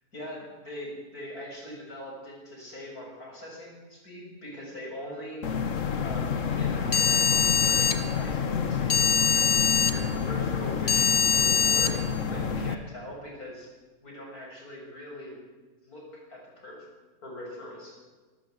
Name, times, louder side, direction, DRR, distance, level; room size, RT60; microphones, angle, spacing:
voice 1, 0.1-5.4 6.0-9.0 9.3-9.5 9.8-13.7 14.0-15.4 15.8-16.9 17.2-17.9, left 1 dB, 90° left, -1 dB, 7.5 m, -42 dB
Mainboard Error Code, 5.4-12.7, left 6 dB, 60° left, 1.6 m, -24 dB
25.0 x 13.5 x 8.1 m, 1.3 s
omnidirectional pair, 1.5 m